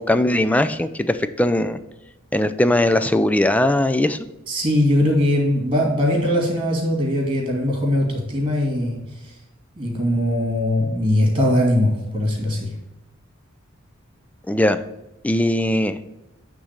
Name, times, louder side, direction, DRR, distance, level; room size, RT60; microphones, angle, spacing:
voice 1, 0.0-1.8 2.3-4.2 14.5-14.8 15.2-16.0, left 1 dB, 5° left, 12 dB, 0.4 m, -19 dB
voice 2, 4.5-9.0 9.2-9.3 9.8-12.7, left 1 dB, 25° right, -1 dB, 2.5 m, -20 dB
8.9 x 3.8 x 6.5 m, 0.94 s
head